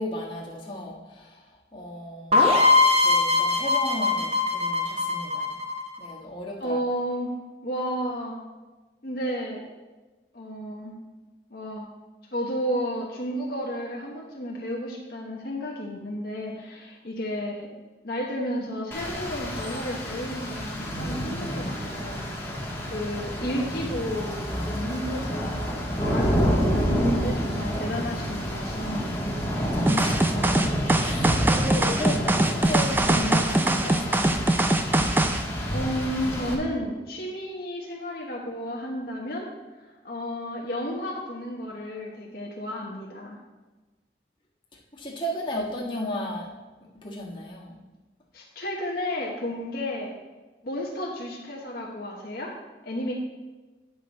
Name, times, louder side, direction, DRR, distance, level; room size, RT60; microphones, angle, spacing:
voice 1, 0.0-2.6 3.0-5.6 6.0-6.8 29.6-34.5 44.9-46.5 46.9-47.8, left 1 dB, 30° left, -3 dB, 1.5 m, -34 dB
sound 1, 2.3-6.1, left 3 dB, 35° right, 1.0 m, -21 dB
voice 2, 6.6-7.3 7.6-8.4 9.0-9.6 10.3-11.0 11.5-11.9 12.3-17.7 18.0-22.2 22.8-25.6 26.0-29.3 35.7-39.5 40.0-43.4 48.3-50.1 50.6-52.5 52.8-53.1, equal, 55° left, -2 dB, 1.1 m, -32 dB
Rain, 18.9-36.5, equal, 15° left, 1.3 m, -29 dB
sound 2, 29.9-35.4, right 2 dB, 10° right, 0.4 m, -22 dB
9.2 x 6.3 x 4.1 m, 1.2 s
head